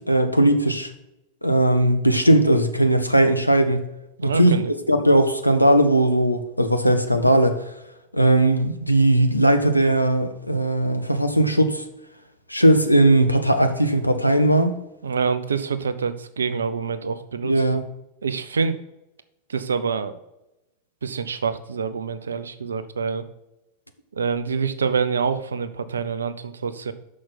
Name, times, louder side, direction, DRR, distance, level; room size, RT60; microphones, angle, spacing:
voice 1, 0.1-0.9 1.4-3.9 4.2-4.6 4.9-7.6 8.1-11.8 12.5-14.7 17.4-17.8, right 1 dB, 90° left, 7 dB, 0.8 m, -18 dB
voice 2, 4.2-4.7 15.0-17.6 18.2-18.8 19.5-20.1 21.0-23.3 24.1-26.9, right 5 dB, 70° right, 12 dB, 0.6 m, -26 dB
6.4 x 6.0 x 5.7 m, 0.91 s
figure-of-eight pair, 90°, 0 cm